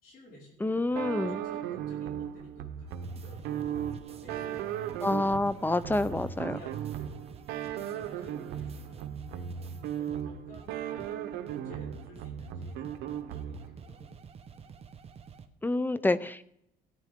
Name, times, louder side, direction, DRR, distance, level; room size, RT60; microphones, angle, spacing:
voice 1, 0.0-3.7 4.1-5.1 5.6-7.3 7.7-13.0 13.3-14.8, left 1 dB, 60° left, -4 dB, 5.1 m, -54 dB
voice 2, 0.6-1.4 5.0-6.6 15.6-16.4, left 2 dB, 10° left, 15 dB, 0.6 m, -28 dB
sound 1, 1.0-13.9, right 9 dB, 90° right, 0.9 m, -37 dB
sound 2, 2.9-10.2 10.5-10.7 11.0-11.1 11.5-11.6 11.9-15.5, right 7 dB, 35° right, 1.0 m, -49 dB
17.0 x 9.6 x 3.7 m, 0.75 s
cardioid pair, 110°, 17 cm